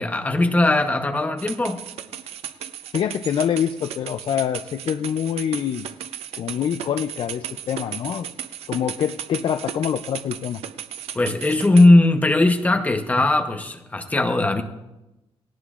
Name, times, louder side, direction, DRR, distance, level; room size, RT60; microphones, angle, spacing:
voice 1, 0.0-1.8 11.1-14.6, left 2 dB, 15° left, 5 dB, 0.9 m, -18 dB
sound 1, 1.4-11.9, right 9 dB, 85° right, 0.6 m, -35 dB
voice 2, 2.9-5.8 6.4-8.3 8.7-10.6, left 9 dB, 55° left, 8 dB, 0.4 m, -25 dB
18.5 x 18.0 x 2.5 m, 0.97 s
wide cardioid pair, 175°, 10 cm